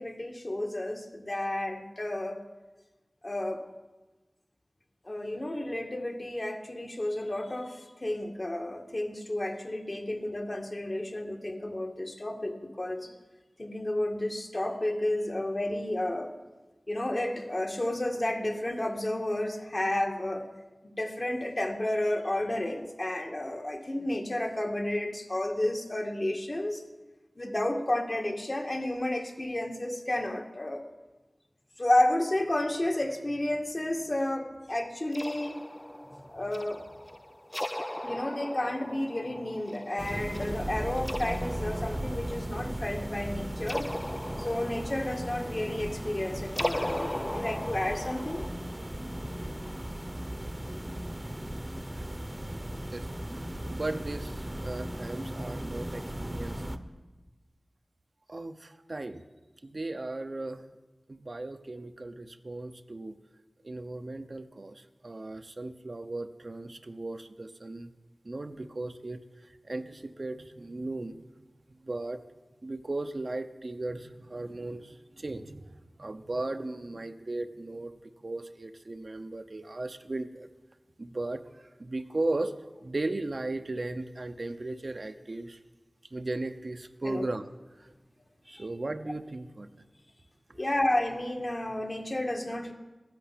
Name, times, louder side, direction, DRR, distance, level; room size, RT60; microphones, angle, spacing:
voice 1, 0.0-2.4 3.2-3.7 5.0-13.1 13.6-16.3 16.9-20.5 21.0-26.8 27.4-30.8 31.8-35.6 36.3-36.9 38.0-43.9 44.4-48.5 87.0-87.3 88.5-88.7 90.5-92.7, left 1 dB, 40° left, 4 dB, 2.0 m, -31 dB
sound 1, 35.1-48.5, left 1 dB, 15° left, 0.5 m, -39 dB
sound 2, 40.0-56.8, right 1 dB, 20° right, 1.1 m, -37 dB
voice 2, 53.3-56.6 58.3-59.2 59.6-60.7 61.1-63.2 63.6-67.9 68.2-71.2 71.8-72.2 72.6-80.5 81.0-82.6 82.8-85.6 86.1-87.4 87.8-87.9 88.4-89.8, right 2 dB, 60° right, 8 dB, 0.9 m, -36 dB
14.5 x 10.5 x 8.5 m, 1.2 s
wide cardioid pair, 50°, 0 cm